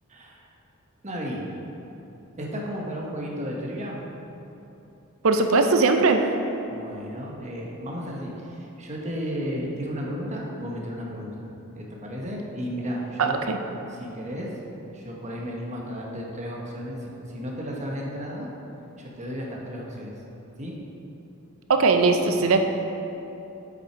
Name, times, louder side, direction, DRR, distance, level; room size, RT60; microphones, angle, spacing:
voice 1, 0.1-0.4 1.0-1.4 2.4-4.0 6.7-11.5 11.7-13.4 13.9-14.5 14.9-17.0 17.3-18.5 19.0-20.1 20.6-20.7, equal, 35° right, -2 dB, 1.1 m, -33 dB
voice 2, 5.2-6.2 13.2-13.6 21.7-22.6, right 4 dB, 65° right, 6 dB, 0.6 m, -20 dB
7.9 x 6.2 x 4.5 m, 2.9 s
head